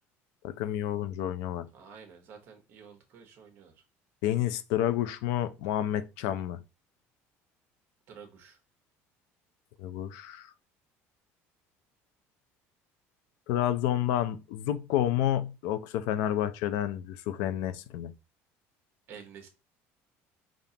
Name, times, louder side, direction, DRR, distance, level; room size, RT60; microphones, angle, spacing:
voice 1, 0.4-1.7 4.2-6.6 9.8-10.5 13.5-18.1, left 11 dB, 80° left, 0.4 m, -30 dB
voice 2, 1.7-3.8 8.1-8.6 19.1-19.5, right 6 dB, 45° right, 0.9 m, -50 dB
5.2 x 2.4 x 2.8 m
cardioid pair, 165°, 5 cm